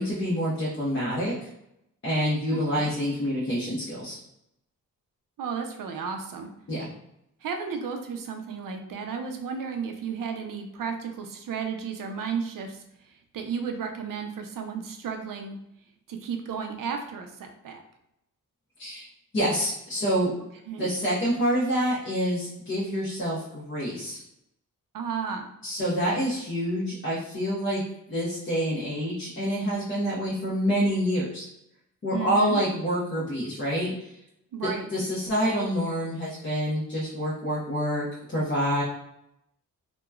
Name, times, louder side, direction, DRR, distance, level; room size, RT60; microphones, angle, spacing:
voice 1, 0.0-1.5 2.0-4.2 6.7-6.9 18.8-19.1 19.3-20.3 20.8-24.2 25.6-27.8 28.1-31.4 32.0-34.1 34.9-38.8, equal, 35° left, -8 dB, 0.8 m, -27 dB
voice 2, 5.4-6.5 7.4-12.8 13.3-15.6 16.1-17.8 20.7-20.9 24.9-25.5 32.1-32.6 34.5-34.9, right 6 dB, 70° right, 5 dB, 0.5 m, -33 dB
2.9 x 2.2 x 2.3 m, 0.80 s
wide cardioid pair, 100°, 34 cm